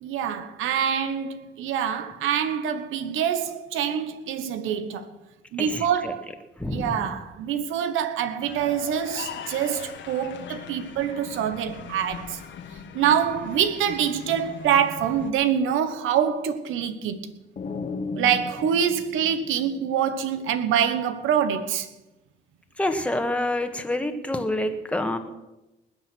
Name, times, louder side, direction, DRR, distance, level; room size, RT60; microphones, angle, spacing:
voice 1, 0.0-5.1 5.5-6.3 6.7-12.4 12.9-17.3 18.1-21.9, right 8 dB, 90° right, 1.2 m, -25 dB
voice 2, 5.6-6.1 6.6-7.1 22.8-25.2, left 1 dB, 5° left, 1.5 m, -27 dB
sound 1, 8.4-15.3, left 7 dB, 70° left, 1.4 m, -40 dB
sound 2, 17.6-20.3, left 4 dB, 40° left, 1.3 m, -35 dB
20.0 x 7.8 x 6.2 m
cardioid pair, 90°, 20 cm